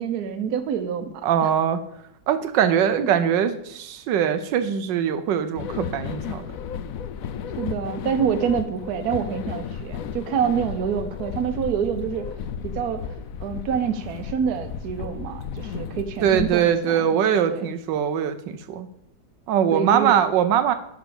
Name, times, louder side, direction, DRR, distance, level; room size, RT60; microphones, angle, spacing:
voice 1, 0.0-1.5 3.0-3.1 7.6-12.3 12.6-13.1 13.4-17.2 17.5-17.7 19.7-20.2, right 7 dB, 65° right, 9 dB, 1.3 m, -27 dB
voice 2, 1.2-1.8 2.3-6.4 16.2-18.9 19.5-20.7, right 8 dB, 85° right, 9 dB, 1.3 m, -22 dB
sound 1, 5.5-16.5, left 7 dB, 65° left, 0.9 m, -34 dB
10.5 x 4.0 x 7.0 m, 0.81 s
omnidirectional pair, 1.9 m